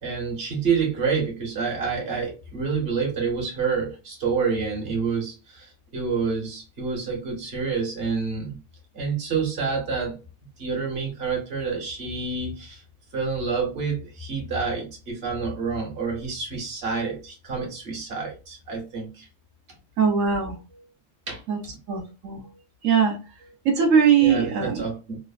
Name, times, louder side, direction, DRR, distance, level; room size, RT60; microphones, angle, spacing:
voice 1, 0.0-8.6 8.9-10.2 10.6-12.8 13.1-19.3 21.3-21.4 24.2-25.2, right 5 dB, 55° right, 1.2 m, -28 dB
voice 2, 20.0-20.6 21.5-21.6 21.9-22.4 22.8-23.2 23.6-24.8, right 6 dB, 90° right, 1.1 m, -20 dB
3.2 x 2.0 x 2.4 m
omnidirectional pair, 1.3 m